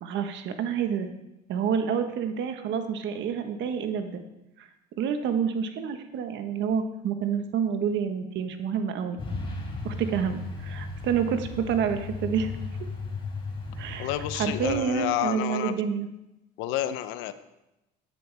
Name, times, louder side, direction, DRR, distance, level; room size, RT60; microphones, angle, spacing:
voice 1, 0.0-1.1 1.5-4.2 4.6-4.7 5.0-9.2 9.8-12.5 13.8-16.1, right 7 dB, 65° right, 7 dB, 1.4 m, -28 dB
Truck, 9.2-14.8, left 3 dB, 25° left, 4.4 m, -35 dB
voice 2, 14.0-15.7 16.6-17.3, left 13 dB, 80° left, 12 dB, 0.8 m, -29 dB
14.5 x 9.9 x 3.5 m, 0.94 s
supercardioid pair, 85°, 20 cm